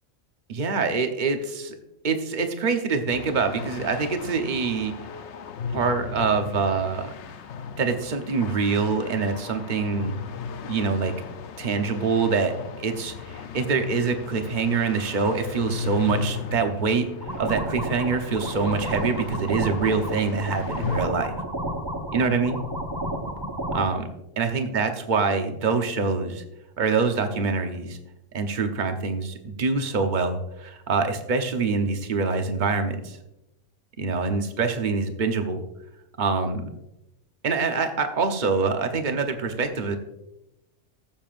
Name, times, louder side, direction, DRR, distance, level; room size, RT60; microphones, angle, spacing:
voice 1, 0.5-1.8 2.0-4.9 5.7-7.1 7.8-10.2 10.7-11.1 11.6-12.5 12.8-17.1 17.4-21.3 22.1-22.6 23.7-24.1 24.4-26.4 26.8-28.0 28.3-33.2 34.0-35.6 36.2-36.7 37.4-40.0, right 4 dB, 40° right, 6 dB, 1.0 m, -25 dB
sound 1, 3.1-21.0, left 6 dB, 70° left, 0.9 m, -37 dB
sound 2, 17.2-23.9, right 1 dB, 20° right, 1.0 m, -31 dB
20.0 x 7.0 x 2.5 m, 0.92 s
omnidirectional pair, 1.3 m